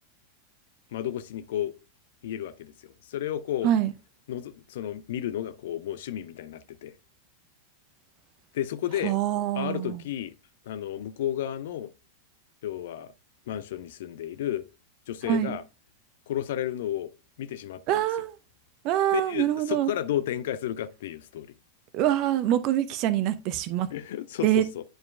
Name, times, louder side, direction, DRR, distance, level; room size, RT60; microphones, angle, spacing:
voice 1, 0.9-1.7 2.2-3.7 4.3-6.9 8.5-9.2 9.5-10.3 10.7-11.9 12.6-13.1 13.5-14.6 15.1-15.6 16.3-17.1 17.4-18.0 19.1-21.5 23.9-24.8, left 11 dB, 55° left, 0.5 m, -32 dB
voice 2, 9.0-10.0 15.2-15.6 17.9-18.3 18.8-19.9 21.9-23.9 24.4-24.6, right 12 dB, 40° right, 0.6 m, -25 dB
10.0 x 4.5 x 2.3 m
figure-of-eight pair, 90°, 0 cm